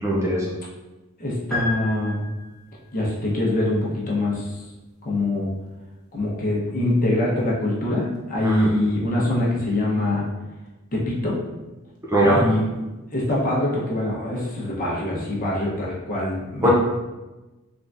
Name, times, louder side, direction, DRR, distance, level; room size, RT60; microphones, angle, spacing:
voice 1, 0.0-0.5 8.4-8.7 12.1-12.4 16.6-16.7, right 1 dB, 15° right, -5 dB, 0.6 m, -19 dB
voice 2, 1.2-2.1 2.9-4.5 5.0-5.5 6.1-10.2 10.9-11.4 12.2-12.7 13.1-16.7, left 1 dB, 40° left, -5 dB, 1.0 m, -24 dB
sound 1, 1.5-2.8, left 3 dB, 5° left, 1.0 m, -30 dB
3.7 x 3.5 x 2.6 m, 1.1 s
head